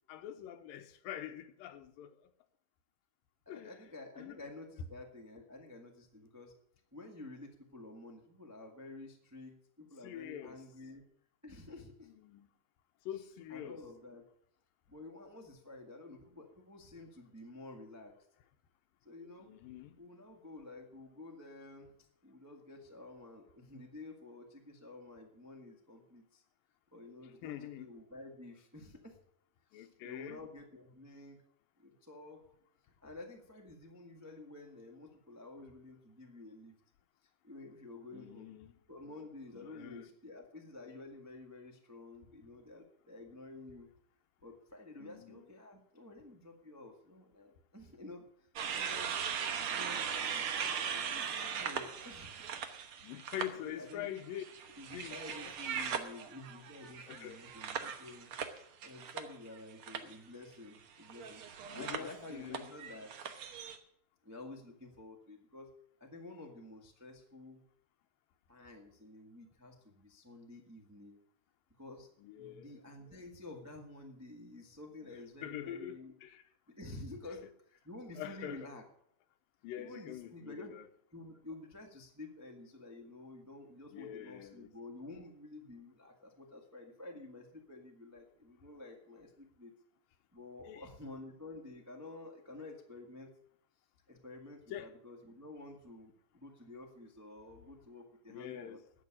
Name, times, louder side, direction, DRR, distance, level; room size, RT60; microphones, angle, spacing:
voice 1, 0.1-2.2 3.5-3.8 4.2-4.4 10.0-10.6 12.2-12.5 13.1-13.8 19.4-20.0 27.4-27.9 29.7-30.4 38.1-38.8 39.5-40.1 45.0-45.4 53.0-54.4 54.9-55.5 57.1-57.4 61.8-62.7 72.2-72.7 73.1-73.2 75.4-76.4 78.2-78.7 79.6-80.9 83.9-84.7 90.7-90.8 94.7-94.9 98.3-98.8, left 11 dB, 90° left, 2.6 m, -45 dB
voice 2, 3.4-6.5 6.9-11.0 11.4-12.1 13.5-14.2 14.9-18.1 19.0-19.5 20.0-21.9 22.2-26.4 26.9-29.2 29.7-31.4 31.8-32.5 32.8-36.7 37.4-38.5 38.9-43.9 44.4-49.3 49.7-52.3 53.4-54.1 54.8-58.3 58.8-63.3 64.2-65.7 66.0-67.6 68.5-71.2 71.8-72.1 72.4-76.1 76.4-78.8 79.8-80.7 81.1-89.7 90.3-93.3 94.1-98.8, left 2 dB, 20° right, 0.5 m, -51 dB
sound 1, 48.6-53.5 53.9-59.6 59.8-60.1 61.0-63.8, right 7 dB, 65° right, 1.4 m, -39 dB
11.0 x 7.9 x 10.0 m
omnidirectional pair, 4.0 m